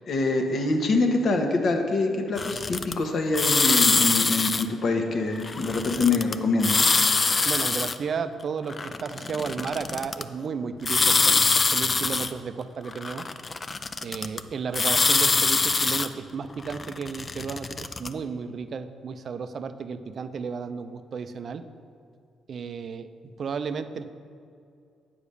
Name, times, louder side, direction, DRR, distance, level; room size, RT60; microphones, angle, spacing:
voice 1, 0.1-6.8, left 3 dB, 55° left, 4 dB, 1.2 m, -25 dB
sound 1, 2.4-2.9 3.3-4.6 5.4-6.3 6.6-8.0 8.7-10.2 10.8-12.3 12.9-14.4 14.7-16.1 16.6-18.1, left 4 dB, 30° left, 0.4 m, -23 dB
voice 2, 7.4-13.3 14.0-21.6 22.5-23.1 23.4-24.1, right 5 dB, 50° right, 11 dB, 0.5 m, -33 dB
8.8 x 5.0 x 6.8 m, 2.5 s
cardioid pair, 90°, 0 cm